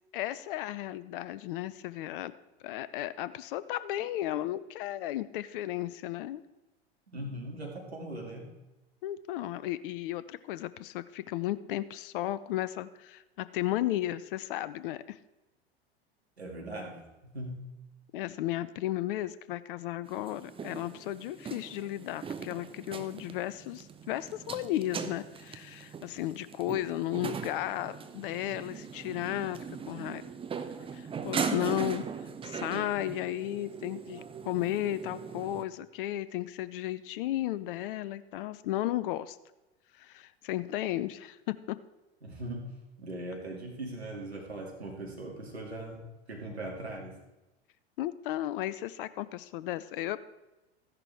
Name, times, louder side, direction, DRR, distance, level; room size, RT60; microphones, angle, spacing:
voice 1, 0.1-2.3 2.6-6.4 9.0-15.2 18.1-30.2 30.9-39.4 40.0-41.8 48.0-50.2, left 14 dB, 60° left, 16 dB, 0.6 m, -34 dB
voice 2, 7.1-8.5 16.4-17.6 42.2-42.7 43.0-47.2, right 1 dB, 90° right, 1 dB, 2.5 m, -40 dB
sound 1, 20.1-35.6, right 6 dB, 15° right, 0.8 m, -39 dB
14.0 x 10.5 x 3.5 m, 1.0 s
figure-of-eight pair, 90°, 31 cm